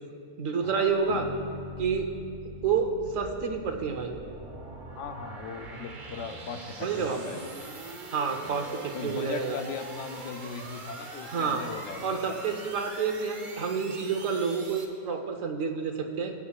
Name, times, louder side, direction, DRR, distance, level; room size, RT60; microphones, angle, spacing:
voice 1, 0.4-1.3 1.8-2.1 2.6-4.1 6.8-7.2 8.1-9.6 11.3-11.6 12.0-16.3, right 5 dB, 75° right, 4 dB, 1.3 m, -29 dB
sound 1, 1.0-14.8, right 2 dB, 40° right, 1.0 m, -44 dB
Bass guitar, 1.1-5.0, left 3 dB, 85° left, 2.2 m, -44 dB
voice 2, 4.9-7.5 8.5-8.7 8.9-12.6, left 5 dB, 65° left, 7 dB, 1.0 m, -39 dB
19.5 x 8.5 x 2.4 m, 2.4 s
omnidirectional pair, 1.4 m